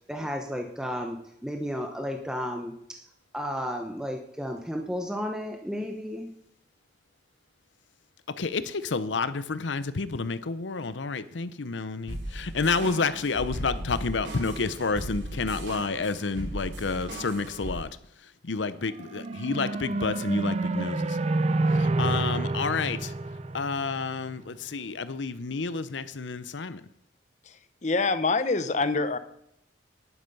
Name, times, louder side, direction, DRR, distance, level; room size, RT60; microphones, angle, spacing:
voice 1, 0.1-3.0 3.3-6.3, equal, 5° right, 2 dB, 0.9 m, -33 dB
voice 2, 8.3-17.9 18.4-21.2 21.7-23.1 23.5-26.8, left 4 dB, 90° left, 14 dB, 0.7 m, -30 dB
sound 1, 12.1-17.8, right 1 dB, 75° right, 3.0 m, -37 dB
sound 2, 18.8-24.3, right 2 dB, 35° right, 0.5 m, -28 dB
voice 3, 27.5-29.2, left 3 dB, 40° left, 11 dB, 0.8 m, -26 dB
11.0 x 9.9 x 5.4 m, 0.74 s
head